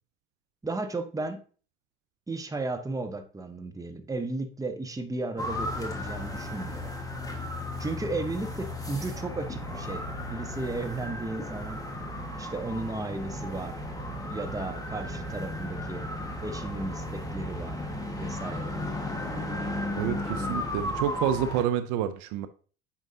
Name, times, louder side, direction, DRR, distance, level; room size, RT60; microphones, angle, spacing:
voice 1, 0.6-1.4 2.3-6.9 7.8-10.0 10.3-11.8 12.4-13.9 14.3-16.1 16.4-17.8 18.2-18.8, right 2 dB, 10° right, 8 dB, 0.9 m, -34 dB
sound 1, 5.4-21.6, left 1 dB, 10° left, 1.5 m, -35 dB
voice 2, 20.0-22.5, right 10 dB, 55° right, 11 dB, 0.6 m, -28 dB
8.2 x 5.2 x 2.7 m, 0.39 s
hypercardioid pair, 70°, 37 cm